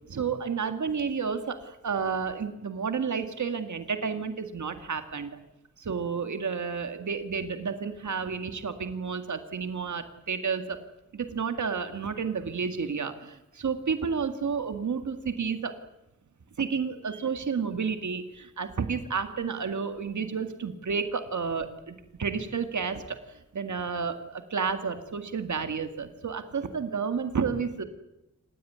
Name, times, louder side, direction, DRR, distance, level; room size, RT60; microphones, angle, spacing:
voice 1, 0.1-5.4 5.8-10.8 11.1-15.8 16.6-27.8, right 5 dB, 75° right, 8 dB, 2.0 m, -31 dB
28.0 x 16.0 x 9.4 m, 0.91 s
wide cardioid pair, 140°, 30 cm